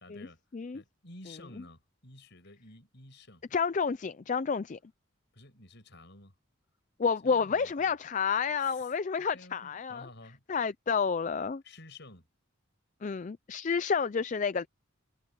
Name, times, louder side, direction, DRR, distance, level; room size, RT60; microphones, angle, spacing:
voice 1, 0.0-0.4 0.7-3.4 5.3-6.4 7.2-7.9 8.6-8.9 9.2-10.4 11.6-12.3, left 2 dB, 55° left, 7.6 m, -52 dB
voice 2, 3.5-4.8 7.0-10.1 10.5-11.6 13.0-14.7, left 5 dB, 35° left, 0.4 m, -30 dB
head